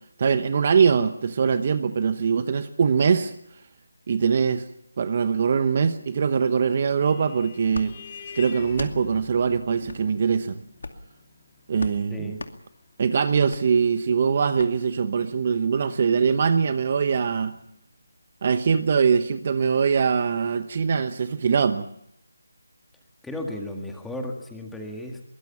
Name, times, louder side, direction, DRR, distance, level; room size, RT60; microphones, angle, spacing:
voice 1, 0.2-3.3 4.1-4.7 5.0-8.0 8.3-10.6 11.7-12.4 13.0-17.6 18.4-21.9, right 6 dB, 35° right, 11 dB, 1.0 m, -22 dB
Vehicle horn car horn honking, 7.0-15.4, left 5 dB, 25° left, 2.6 m, -46 dB
sound 1, 7.7-7.9 8.7-9.0 9.8-10.0 10.8-11.1 11.8-12.0 12.4-12.6 13.5-13.6 14.6-14.7, left 3 dB, 70° left, 2.4 m, -36 dB
voice 2, 23.2-25.2, left 1 dB, ahead, 2 dB, 1.9 m, -34 dB
22.5 x 19.0 x 7.2 m, 0.75 s
figure-of-eight pair, 170°, 0 cm